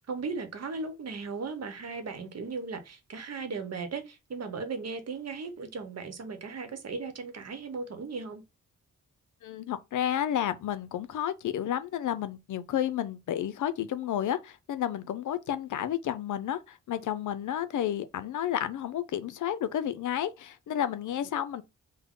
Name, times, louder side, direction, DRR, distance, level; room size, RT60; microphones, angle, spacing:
voice 1, 0.0-8.4, right 4 dB, 55° right, 0.9 m, -37 dB
voice 2, 9.4-21.6, left 10 dB, 80° left, 0.5 m, -31 dB
3.6 x 2.1 x 3.6 m
cardioid pair, 75°, 30 cm